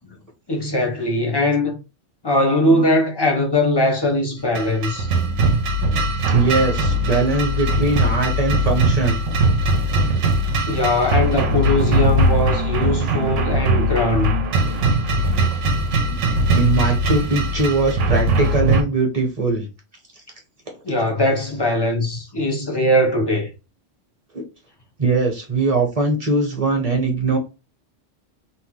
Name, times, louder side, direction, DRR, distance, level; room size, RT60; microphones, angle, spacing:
voice 1, 0.5-1.8 2.2-5.1 10.6-14.4 20.8-23.5, left 1 dB, 30° left, 0.5 m, -20 dB
sound 1, 4.5-18.8, right 1 dB, 90° right, 1.0 m, -20 dB
voice 2, 6.3-9.2 16.5-19.7 24.3-24.4 25.0-27.4, right 3 dB, 35° right, 0.8 m, -21 dB
2.8 x 2.1 x 3.1 m
omnidirectional pair, 1.2 m